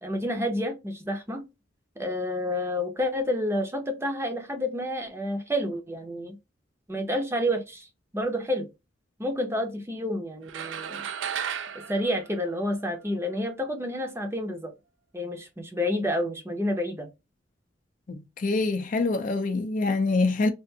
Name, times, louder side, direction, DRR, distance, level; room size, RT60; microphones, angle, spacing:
voice 1, 0.0-1.4 2.0-6.4 6.9-7.9 8.1-8.7 9.2-11.0 11.9-14.7 15.1-17.1, left 1 dB, 15° right, 0.6 m, -29 dB
sound 1, 10.5-13.1, right 8 dB, 85° right, 0.4 m, -35 dB
voice 2, 18.1-20.5, left 3 dB, 45° left, 0.5 m, -25 dB
3.4 x 2.4 x 2.7 m
head